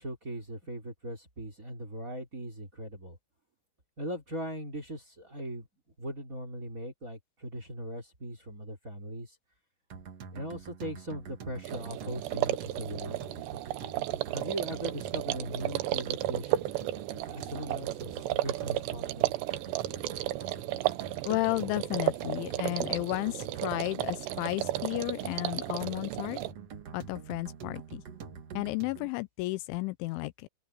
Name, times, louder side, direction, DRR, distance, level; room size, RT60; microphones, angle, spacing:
voice 1, 0.0-3.2 4.0-5.7 6.0-9.3 10.3-13.2 14.3-16.6 17.3-19.3, right 1 dB, 20° right, 3.1 m, -39 dB
sound 1, 9.9-29.1, right 6 dB, 60° right, 1.6 m, -45 dB
sound 2, 11.6-26.5, right 15 dB, 75° right, 2.9 m, -33 dB
voice 2, 21.3-26.4 26.9-28.0 28.5-30.5, left 21 dB, 85° left, 3.0 m, -33 dB
open air
omnidirectional pair, 5.4 m